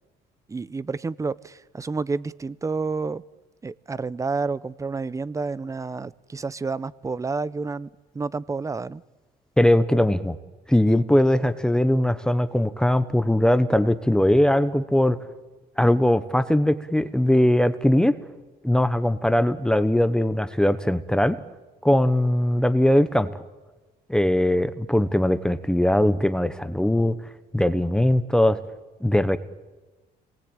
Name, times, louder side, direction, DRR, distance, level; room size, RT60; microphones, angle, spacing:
voice 1, 0.5-3.2 3.6-9.0, right 4 dB, 20° right, 19 dB, 0.7 m, -29 dB
voice 2, 9.6-10.4 10.7-15.2 15.8-18.1 18.6-21.4 21.8-23.3 24.1-27.1 27.5-28.6 29.0-29.4, left 1 dB, 5° left, 11 dB, 1.0 m, -20 dB
26.0 x 19.5 x 8.9 m, 1.2 s
cardioid pair, 110°, 17 cm